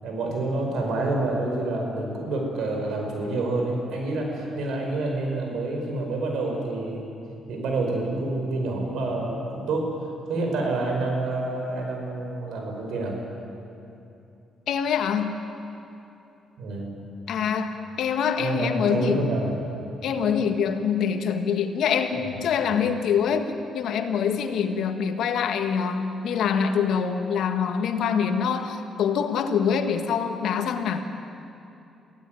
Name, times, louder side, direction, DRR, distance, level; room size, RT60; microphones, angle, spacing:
voice 1, 0.0-7.0 7.5-9.9 10.3-13.2 16.6-16.9 18.4-19.5, right 2 dB, 75° right, 1 dB, 5.6 m, -28 dB
voice 2, 14.7-15.3 17.3-19.2 20.0-31.0, left 7 dB, 75° left, 6 dB, 1.7 m, -25 dB
24.0 x 16.0 x 9.3 m, 2.8 s
cardioid pair, 90°, 0 cm